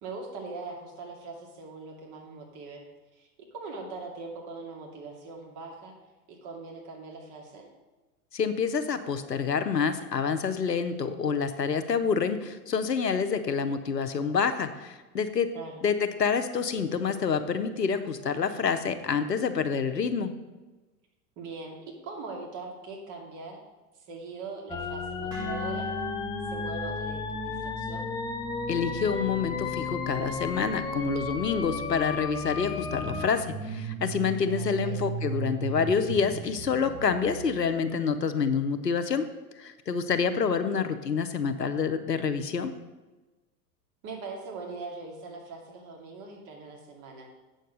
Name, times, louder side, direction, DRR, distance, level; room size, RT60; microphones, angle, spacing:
voice 1, 0.0-2.8 3.1-5.9 6.3-7.7 15.5-15.8 21.4-23.6 23.9-25.9 26.5-28.1 34.4-35.0 44.0-47.3, right 3 dB, 40° right, 0 dB, 2.5 m, -41 dB
voice 2, 8.3-15.5 15.8-20.3 28.7-39.3 39.6-42.7, left 6 dB, 85° left, 9 dB, 0.9 m, -27 dB
sound 1, 24.7-33.3, left 4 dB, 10° left, 0.5 m, -33 dB
sound 2, 25.3-33.4, right 6 dB, 85° right, 3.5 m, -45 dB
sound 3, 32.8-37.6, right 5 dB, 20° right, 1.9 m, -36 dB
8.1 x 6.6 x 6.4 m, 1.2 s
figure-of-eight pair, 95°, 48 cm